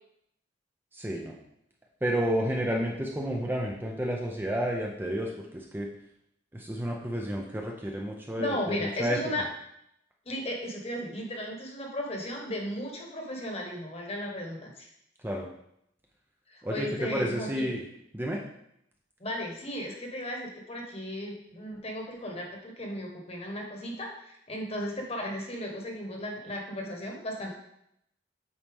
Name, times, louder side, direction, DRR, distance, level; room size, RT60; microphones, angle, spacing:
voice 1, 0.9-1.3 2.0-5.9 6.5-9.2 15.2-15.5 16.6-17.8 18.1-18.4, equal, 10° right, 0 dB, 0.6 m, -31 dB
voice 2, 8.4-9.4 10.2-14.9 16.5-17.7 19.2-27.6, left 1 dB, 35° left, 0 dB, 1.3 m, -35 dB
8.2 x 4.2 x 3.5 m, 0.77 s
head